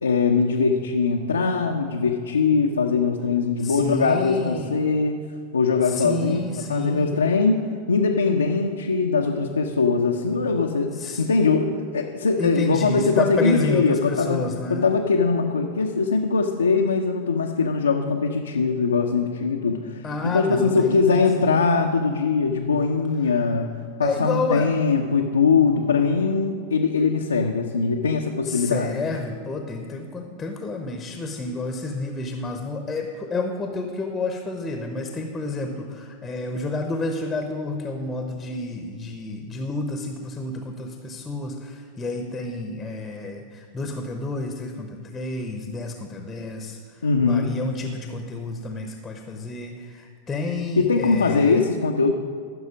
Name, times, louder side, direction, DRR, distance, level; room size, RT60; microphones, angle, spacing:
voice 1, 0.0-5.2 5.5-6.4 6.7-7.6 7.9-10.9 11.2-23.7 24.0-28.9 47.0-47.5 50.8-52.1, left 4 dB, 75° left, 0 dB, 0.7 m, -21 dB
voice 2, 3.6-4.7 5.8-7.2 10.9-11.3 12.4-14.9 20.0-21.7 24.0-24.7 28.4-51.6, left 2 dB, 15° left, 4 dB, 1.0 m, -30 dB
15.0 x 6.4 x 5.1 m, 2.1 s
figure-of-eight pair, 90°, 0 cm